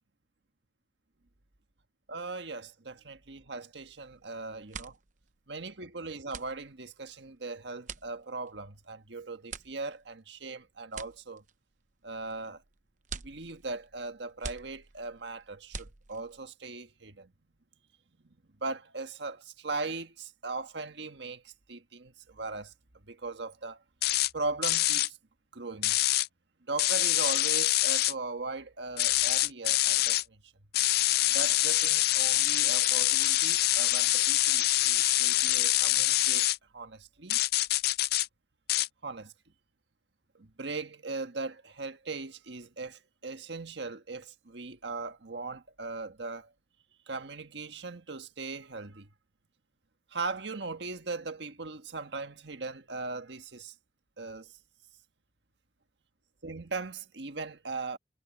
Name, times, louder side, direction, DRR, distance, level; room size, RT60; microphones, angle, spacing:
voice 1, 2.1-5.0 5.5-11.4 12.0-12.6 13.2-17.3 18.2-22.7 23.1-23.8 24.3-25.2 25.5-26.0 26.7-30.5 31.2-36.5 36.7-37.4 39.0-39.3 40.3-46.5 47.1-49.1 50.1-53.7 54.2-54.5 56.4-58.0, right 3 dB, 70° right, 1.5 m, -39 dB
sound 1, 4.1-4.3 4.5-16.5, right 5 dB, 45° right, 0.9 m, -46 dB
sound 2, 24.0-24.3 24.6-25.1 25.8-26.3 26.8-28.1 29.0-30.2 30.7-36.6 37.3-38.3 38.7-38.9, left 16 dB, 55° left, 0.4 m, -25 dB
head